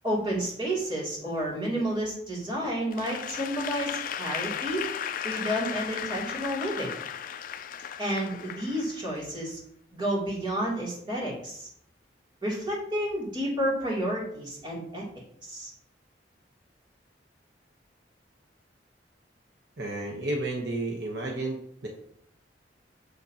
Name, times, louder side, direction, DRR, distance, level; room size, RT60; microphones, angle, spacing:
voice 1, 0.0-4.9 5.2-6.9 8.0-9.6 9.9-11.7 12.4-15.0 15.4-15.7, equal, 25° right, -5 dB, 2.8 m, -30 dB
Applause / Crowd, 2.9-9.3, left 9 dB, 50° left, 0.3 m, -35 dB
voice 2, 19.8-21.6 21.8-21.9, right 2 dB, 65° right, -1 dB, 1.0 m, -31 dB
6.9 x 6.7 x 2.9 m, 0.68 s
head